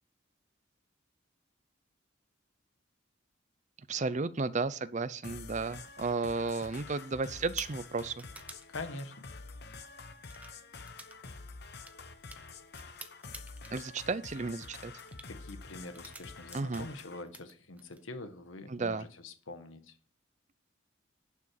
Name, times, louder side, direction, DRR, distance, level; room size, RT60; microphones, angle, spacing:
voice 1, 3.9-8.2 13.7-14.9 16.5-16.9 18.7-19.1, right 4 dB, 35° right, 16 dB, 0.5 m, -33 dB
sound 1, 5.2-17.2, left 4 dB, 55° left, 1.0 m, -48 dB
sound 2, 5.7-6.2 6.5-7.0 7.3-8.7 9.6-9.8 10.2-10.5 10.9-11.2 11.4-13.7 14.1-14.4 14.8-15.3 15.8-17.0 17.2-18.0, right 2 dB, 5° right, 0.8 m, -49 dB
voice 2, 8.7-9.2 15.3-19.9, left 2 dB, 85° left, 8 dB, 1.4 m, -44 dB
11.0 x 6.2 x 6.0 m, 0.43 s
head